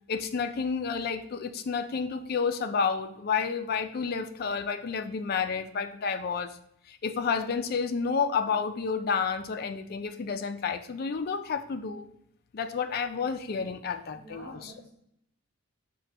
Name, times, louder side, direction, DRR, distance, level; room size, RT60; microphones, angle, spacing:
voice 1, 0.1-6.6 6.9-12.1 12.5-14.7, left 5 dB, 45° left, 8 dB, 0.3 m, -30 dB
voice 2, 14.1-14.9, equal, 30° right, -7 dB, 1.2 m, -47 dB
5.1 x 2.2 x 4.1 m, 0.74 s
head